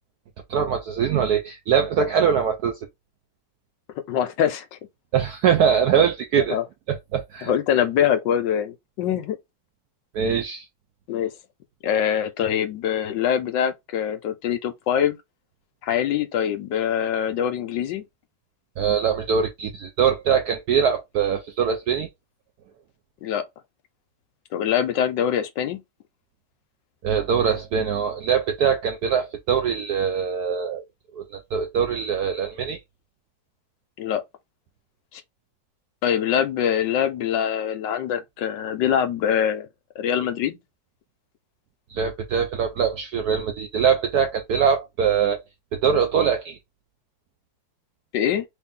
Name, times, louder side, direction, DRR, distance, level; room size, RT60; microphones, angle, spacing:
voice 1, 0.5-2.8 5.1-6.6 6.9-7.5 10.1-10.7 18.8-22.1 27.0-30.8 31.1-32.8 41.9-45.4 45.7-46.6, right 7 dB, 75° right, 0.9 m, -22 dB
voice 2, 4.1-4.7 6.4-6.6 7.4-9.4 11.1-11.3 11.8-15.2 15.8-18.0 23.2-23.4 24.5-25.8 34.0-34.2 35.1-35.2 36.0-39.7 40.0-40.6 48.1-48.4, left 9 dB, 75° left, 1.2 m, -24 dB
3.3 x 2.6 x 3.6 m
omnidirectional pair, 2.2 m